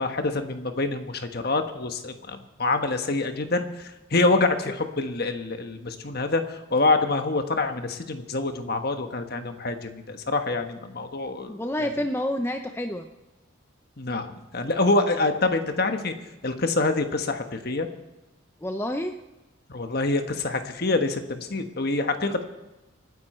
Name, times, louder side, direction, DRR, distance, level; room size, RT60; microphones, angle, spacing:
voice 1, 0.0-11.6 14.0-16.1 16.4-17.9 19.7-22.4, left 3 dB, 50° left, 7 dB, 1.3 m, -26 dB
voice 2, 11.5-13.1 18.6-19.2, left 1 dB, 10° left, 6 dB, 0.6 m, -29 dB
25.5 x 9.8 x 4.4 m, 1.0 s
head